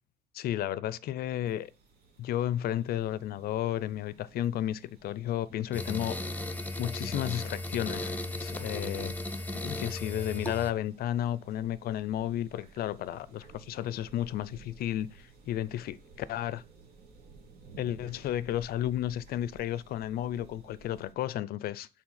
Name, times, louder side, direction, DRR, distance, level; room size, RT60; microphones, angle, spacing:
voice 1, 0.3-1.7 2.2-6.2 6.8-9.1 9.6-16.6 17.8-21.9, left 12 dB, 65° left, 0.5 m, -33 dB
sound 1, 1.4-21.1, right 4 dB, 65° right, 1.9 m, -55 dB
sound 2, 5.7-10.7, left 1 dB, 10° left, 0.8 m, -36 dB
6.1 x 4.0 x 5.7 m
cardioid pair, 110°, 17 cm